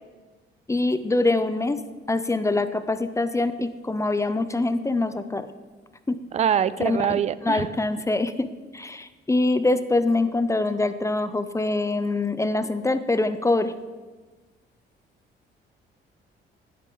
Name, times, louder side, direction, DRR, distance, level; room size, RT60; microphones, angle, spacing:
voice 1, 0.7-1.8 2.1-5.5 6.1-6.2 6.8-8.5 8.7-13.7, left 2 dB, 15° left, 12 dB, 0.6 m, -24 dB
voice 2, 6.3-7.7, right 9 dB, 35° right, 17 dB, 0.4 m, -24 dB
11.5 x 9.8 x 3.9 m, 1.3 s
cardioid pair, 90°, 20 cm